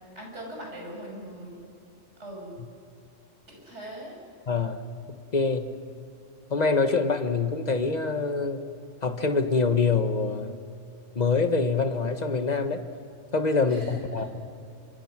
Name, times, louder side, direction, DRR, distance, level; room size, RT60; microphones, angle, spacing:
voice 1, 0.2-1.6 2.2-2.6 3.5-4.2 13.7-14.0, right 1 dB, 60° right, -1 dB, 6.9 m, -40 dB
voice 2, 4.5-4.8 5.1-5.7 6.5-8.6 9.0-10.6 11.1-12.8 13.3-14.5, left 4 dB, 35° left, 7 dB, 1.4 m, -25 dB
27.5 x 25.5 x 6.1 m, 2.6 s
omnidirectional pair, 1.3 m